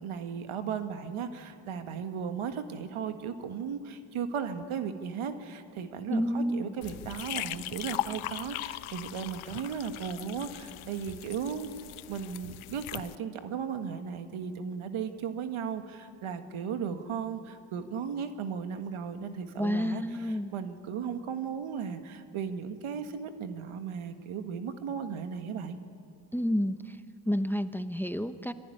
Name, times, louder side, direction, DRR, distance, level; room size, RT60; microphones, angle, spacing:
voice 1, 0.0-11.7 12.1-25.8, right 7 dB, 80° right, 8 dB, 1.7 m, -36 dB
voice 2, 6.1-6.7 19.6-20.5 26.3-27.0 27.3-28.5, equal, 5° left, 11 dB, 0.9 m, -29 dB
sound 1, 6.8-13.2, left 16 dB, 80° left, 0.6 m, -39 dB
24.5 x 14.5 x 10.0 m, 2.3 s
supercardioid pair, 60°, 49 cm